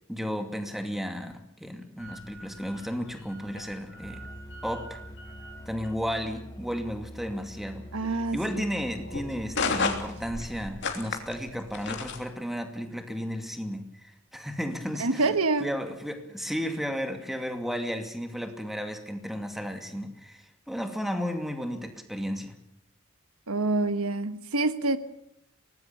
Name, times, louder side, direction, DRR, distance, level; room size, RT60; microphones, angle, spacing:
voice 1, 0.1-4.2 4.6-5.0 5.7-8.0 8.3-15.3 15.6-22.6, equal, ahead, 5 dB, 2.4 m, -33 dB
sound 1, 2.0-12.2, left 4 dB, 55° left, 3.1 m, -36 dB
Musical instrument, 3.9-10.8, equal, 20° left, 1.3 m, -45 dB
voice 2, 7.9-8.7 15.0-15.7 23.5-25.0, right 2 dB, 90° right, 11 dB, 1.4 m, -26 dB
24.5 x 19.5 x 7.0 m, 0.77 s
head